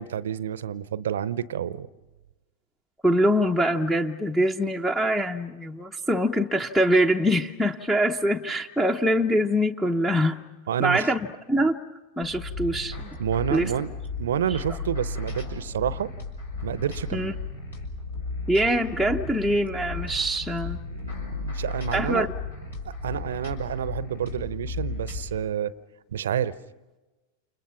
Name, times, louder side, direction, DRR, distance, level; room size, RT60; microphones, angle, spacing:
voice 1, 0.0-1.9 10.7-11.1 13.2-13.9 14.2-16.1 16.6-17.4 20.9-22.3 23.0-25.7 26.1-26.5, right 9 dB, 65° right, 0.8 m, -29 dB
voice 2, 3.0-10.4 10.8-11.8 12.2-13.1 13.5-13.7 17.1-17.3 18.5-20.8 21.9-22.3, equal, 5° left, 0.9 m, -24 dB
sound 1, 12.2-25.3, left 3 dB, 75° left, 5.2 m, -35 dB
29.5 x 29.5 x 5.8 m
figure-of-eight pair, 90°, 0 cm